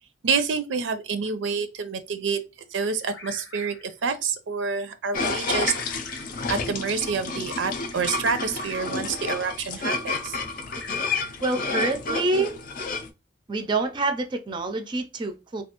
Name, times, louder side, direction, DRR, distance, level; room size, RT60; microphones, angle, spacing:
voice 1, 0.2-2.4 2.7-5.7 6.5-10.4, right 5 dB, 90° right, 0.5 m, -27 dB
Bird vocalization bird call bird song, 2.8-4.0 5.4-6.5 7.9-9.1 10.4-11.6, left 4 dB, 90° left, 0.9 m, -44 dB
sound 1, 5.1-13.1, left 3 dB, 50° left, 0.4 m, -30 dB
voice 2, 11.4-12.6 13.5-15.6, right 2 dB, 25° right, 0.4 m, -26 dB
3.2 x 2.3 x 2.9 m
head